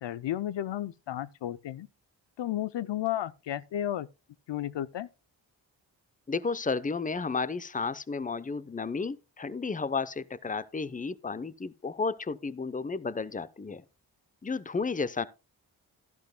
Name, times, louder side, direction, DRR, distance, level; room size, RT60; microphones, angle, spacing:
voice 1, 0.0-1.9 2.4-4.1 4.5-5.1, left 12 dB, 65° left, 0.6 m, -33 dB
voice 2, 6.3-13.8 14.4-15.3, left 4 dB, 15° left, 0.7 m, -32 dB
12.0 x 11.5 x 2.2 m
supercardioid pair, 40°, 46 cm